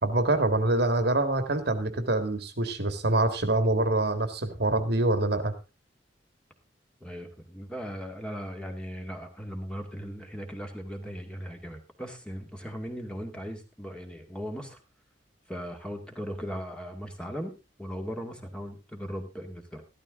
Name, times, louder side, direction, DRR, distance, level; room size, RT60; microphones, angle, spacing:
voice 1, 0.0-5.5, right 2 dB, 60° right, 9 dB, 1.8 m, -25 dB
voice 2, 7.0-14.8 15.5-19.8, equal, 5° left, 3 dB, 2.2 m, -38 dB
13.5 x 13.0 x 3.7 m, 0.28 s
head